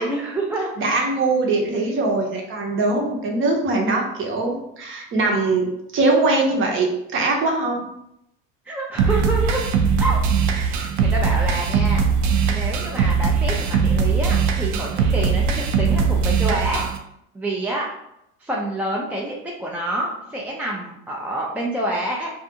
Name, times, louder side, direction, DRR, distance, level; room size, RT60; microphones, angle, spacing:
voice 1, 0.0-0.7 8.7-9.6 10.0-10.2 10.5-12.0 12.5-16.8 17.3-17.9 18.4-22.3, right 1 dB, 5° right, -3 dB, 0.4 m, -27 dB
voice 2, 0.8-5.7 5.9-7.8, right 3 dB, 40° right, 1 dB, 0.8 m, -21 dB
sound 1, 9.0-17.0, right 5 dB, 75° right, 0.5 m, -20 dB
2.4 x 2.4 x 2.8 m, 0.80 s
supercardioid pair, 90°, 31 cm